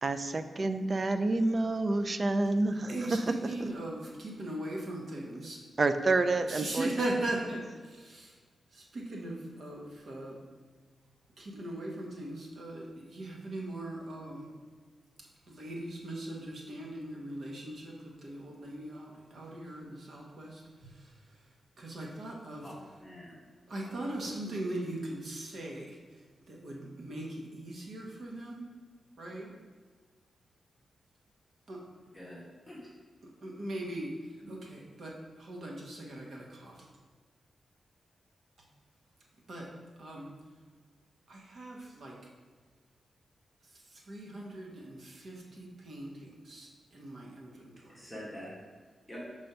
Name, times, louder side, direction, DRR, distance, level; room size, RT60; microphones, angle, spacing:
voice 1, 0.0-3.2 5.8-6.9, right 2 dB, 30° right, 9 dB, 0.3 m, -28 dB
voice 2, 2.9-5.6 6.5-8.4 8.7-10.4 11.4-14.5 15.2-21.5 21.8-22.7 23.7-28.7 29.2-29.5 31.7-31.8 33.2-36.9 38.6-38.7 39.5-40.3 41.3-42.2 43.6-48.1, right 1 dB, 55° right, -2 dB, 1.1 m, -40 dB
voice 3, 23.0-23.5 23.9-24.0 32.1-32.8 34.4-34.5 47.9-48.5 49.1-49.2, equal, 5° left, -7 dB, 1.2 m, -45 dB
5.2 x 3.3 x 5.5 m, 1.5 s
wide cardioid pair, 160°, 0 cm